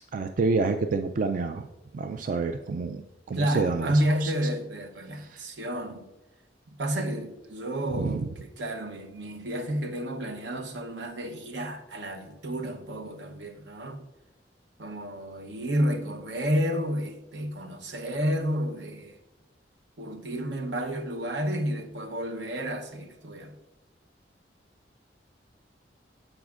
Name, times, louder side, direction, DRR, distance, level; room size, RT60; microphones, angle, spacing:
voice 1, 0.1-1.7 1.9-3.0 3.3-4.3 5.1-5.5 7.9-8.3, right 4 dB, 50° right, 0.3 m, -28 dB
voice 2, 3.3-6.1 6.8-14.0 14.8-19.2 20.0-23.5, equal, 80° right, 0.9 m, -30 dB
13.5 x 4.9 x 2.5 m
head